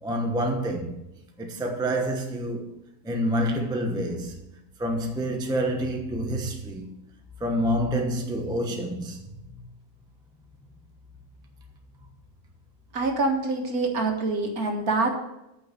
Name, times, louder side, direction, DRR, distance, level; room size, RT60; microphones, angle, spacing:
voice 1, 0.0-1.0 1.4-2.7 3.0-4.4 4.8-6.9 7.4-9.2, equal, 5° right, 0.8 m, -27 dB
voice 2, 12.9-15.1, right 3 dB, 55° right, 1.9 m, -25 dB
8.7 x 6.2 x 8.1 m
omnidirectional pair, 1.9 m